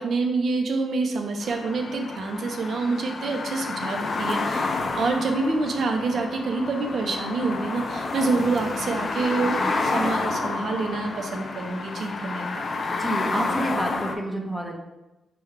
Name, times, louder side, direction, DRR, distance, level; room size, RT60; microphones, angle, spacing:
voice 1, 0.0-12.6, right 3 dB, 65° right, 4 dB, 0.6 m, -27 dB
sound 1, 1.4-14.2, left 3 dB, 50° left, 0.4 m, -29 dB
voice 2, 12.9-14.8, right 1 dB, 5° right, 0 dB, 0.7 m, -29 dB
5.7 x 2.3 x 3.2 m, 1.0 s
cardioid pair, 90°, 0 cm